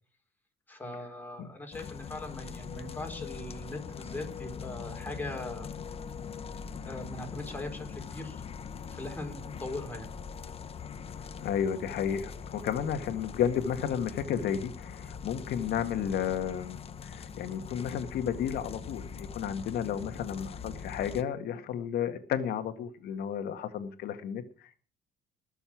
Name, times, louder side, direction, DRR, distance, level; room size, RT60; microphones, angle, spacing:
voice 1, 0.7-5.7 6.8-8.4 8.9-10.1, left 1 dB, 10° left, 2 dB, 4.4 m, -40 dB
sound 1, 1.7-21.2, left 6 dB, 35° left, 1.0 m, -42 dB
voice 2, 11.4-24.8, left 8 dB, 70° left, 8 dB, 1.8 m, -32 dB
20.5 x 7.0 x 6.1 m, 0.41 s
cardioid pair, 110°, 17 cm